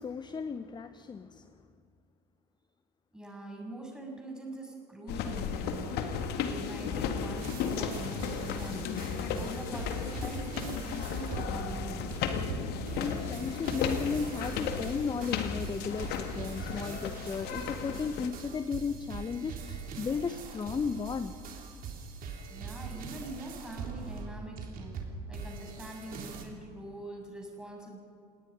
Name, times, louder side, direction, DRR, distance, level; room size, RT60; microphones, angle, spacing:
voice 1, 0.0-1.5 12.9-21.3, left 5 dB, 20° left, 0.9 m, -35 dB
voice 2, 3.1-8.9 9.3-12.2 22.5-28.0, right 1 dB, 5° right, 7.5 m, -43 dB
sound 1, 5.1-18.3, left 7 dB, 50° left, 2.0 m, -35 dB
sound 2, 7.3-26.4, right 5 dB, 45° right, 3.7 m, -42 dB
29.5 x 18.5 x 5.4 m
figure-of-eight pair, 70°, 21 cm